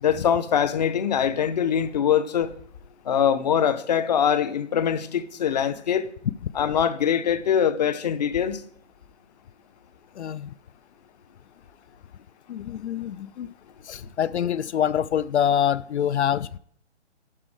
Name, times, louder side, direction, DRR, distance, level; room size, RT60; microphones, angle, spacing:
voice 1, 0.0-2.6 3.0-6.1 6.5-8.6, left 8 dB, 35° left, 0.7 m, -23 dB
voice 2, 10.2-10.5 12.5-13.5 13.8-16.6, left 9 dB, 70° left, 0.5 m, -25 dB
12.0 x 5.2 x 4.7 m
hypercardioid pair, 155°, 36 cm